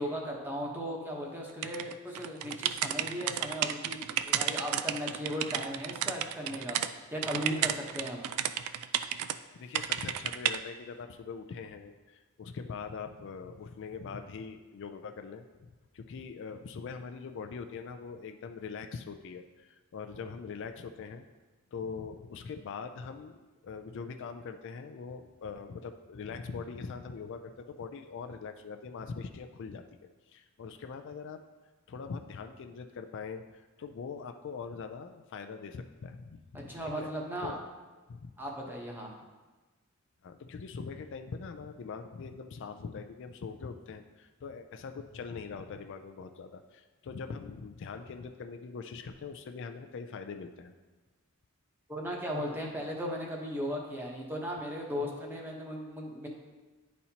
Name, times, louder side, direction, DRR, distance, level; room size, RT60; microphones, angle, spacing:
voice 1, 0.0-8.3 36.7-37.6 38.4-39.1 51.9-56.3, equal, 10° right, -1 dB, 1.0 m, -37 dB
sound 1, 1.6-6.9 7.2-9.4 9.7-10.6, right 11 dB, 90° right, 0.3 m, -32 dB
voice 2, 9.5-21.3 21.7-31.4 31.9-37.1 37.4-37.7 38.1-38.4 40.2-50.7, left 5 dB, 60° left, 7 dB, 0.4 m, -42 dB
10.5 x 4.2 x 2.9 m, 1.2 s
head